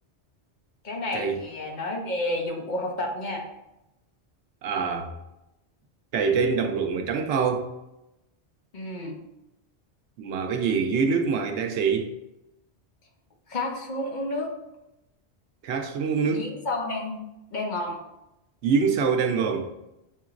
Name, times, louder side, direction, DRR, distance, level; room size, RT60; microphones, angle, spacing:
voice 1, 0.8-3.4 8.7-9.2 13.5-14.5 16.3-17.2 17.5-18.0, left 2 dB, 50° left, 1 dB, 0.8 m, -30 dB
voice 2, 4.6-5.1 6.1-7.7 10.2-12.1 15.6-16.5 18.6-19.7, right 5 dB, 85° right, 6 dB, 0.9 m, -25 dB
6.4 x 2.9 x 2.4 m, 0.91 s
omnidirectional pair, 1.1 m